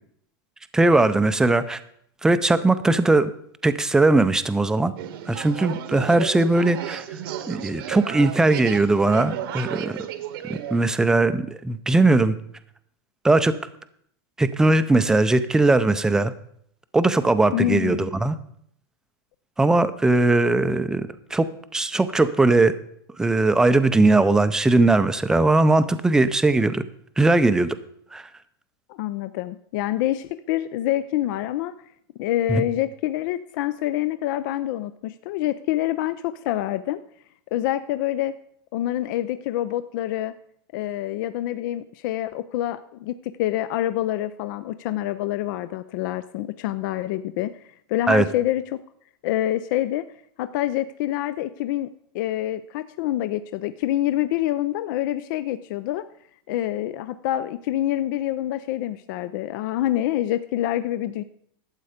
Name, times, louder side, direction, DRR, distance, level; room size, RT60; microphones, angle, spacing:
voice 1, 0.7-1.8 2.2-3.3 3.6-4.9 5.3-7.0 7.5-10.0 10.5-12.3 13.2-13.5 14.4-16.3 16.9-18.3 19.6-21.5 21.7-22.7 23.2-26.8 27.2-27.8 28.1-28.2 32.5-32.6 48.1-48.3, right 2 dB, 5° right, 12 dB, 0.5 m, -19 dB
sound 1, 5.0-10.9, right 10 dB, 65° right, 1.1 m, -33 dB
voice 2, 17.5-18.1 28.9-31.7 32.2-37.0 37.5-38.3 38.7-40.3 40.7-47.6 47.9-48.6 49.2-50.0 50.4-56.0 56.5-61.2, left 13 dB, 55° left, 13 dB, 0.5 m, -26 dB
12.0 x 8.2 x 5.0 m, 0.67 s
supercardioid pair, 155°, 13 cm